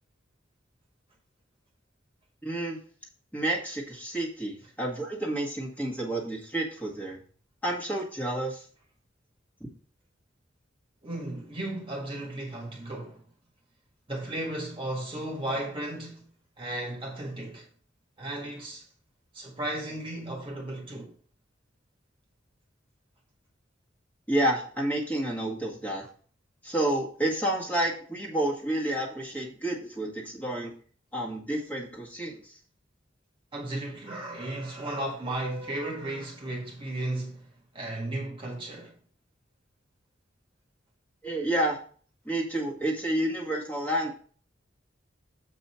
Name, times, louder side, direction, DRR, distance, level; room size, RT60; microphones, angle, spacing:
voice 1, 2.4-2.8 3.3-7.2 7.6-8.7 24.3-26.0 26.6-30.7 31.1-32.5 41.2-41.8 42.3-44.1, right 1 dB, 10° left, 1.8 m, -30 dB
voice 2, 11.0-13.2 14.1-16.3 16.6-17.7 18.2-18.9 19.3-21.1 33.5-38.9, right 1 dB, 30° right, 1.7 m, -35 dB
7.2 x 5.4 x 4.4 m
head